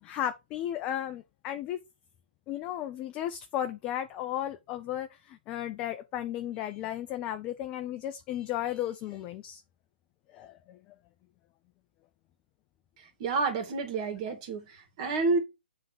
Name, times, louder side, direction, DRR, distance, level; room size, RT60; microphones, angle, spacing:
voice 1, 0.0-1.8 2.5-9.6 10.3-10.8, left 11 dB, 20° left, 0.5 m, -34 dB
voice 2, 13.2-15.4, right 4 dB, 35° right, 2.4 m, -29 dB
7.4 x 3.6 x 6.0 m
figure-of-eight pair, 135°, 6 cm